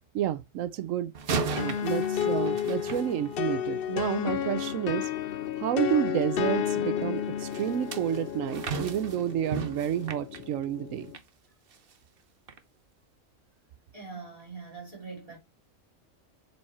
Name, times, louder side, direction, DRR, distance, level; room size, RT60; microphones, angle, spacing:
voice 1, 0.1-1.1 1.5-5.1 5.6-11.1, right 10 dB, 80° right, 1.0 m, -30 dB
sound 1, 1.1-3.7 7.5-11.3 11.7-11.9 12.5-12.6, right 5 dB, 50° right, 1.0 m, -36 dB
sound 2, 1.6-11.2, left 9 dB, 60° left, 0.6 m, -32 dB
voice 2, 13.9-15.4, right 4 dB, 25° right, 3.3 m, -42 dB
7.7 x 4.5 x 4.2 m
omnidirectional pair, 1.3 m